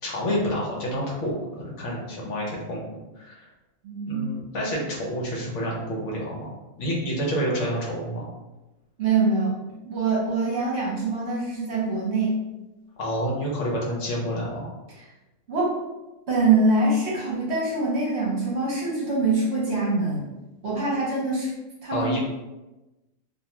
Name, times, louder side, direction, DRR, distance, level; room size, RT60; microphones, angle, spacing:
voice 1, 0.0-2.8 3.2-3.5 4.1-6.5 6.8-8.3 13.0-14.7 21.9-22.2, equal, 70° left, -3 dB, 1.0 m, -28 dB
voice 2, 3.8-4.2 9.0-9.5 9.8-12.4 15.0-15.1 15.5-15.7 16.3-20.3 20.6-21.5 21.8-22.2, right 3 dB, 60° right, -5 dB, 1.0 m, -24 dB
2.5 x 2.2 x 2.9 m, 1.0 s
omnidirectional pair, 1.4 m